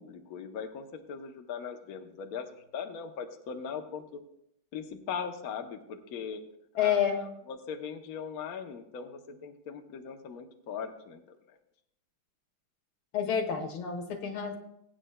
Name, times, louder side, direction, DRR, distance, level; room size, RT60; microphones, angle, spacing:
voice 1, 0.0-4.2 4.7-6.4 6.7-11.6, left 6 dB, 55° left, 5 dB, 1.1 m, -40 dB
voice 2, 6.8-7.2 13.1-14.6, left 8 dB, 80° left, 4 dB, 2.2 m, -29 dB
21.0 x 8.9 x 2.2 m, 0.77 s
omnidirectional pair, 2.3 m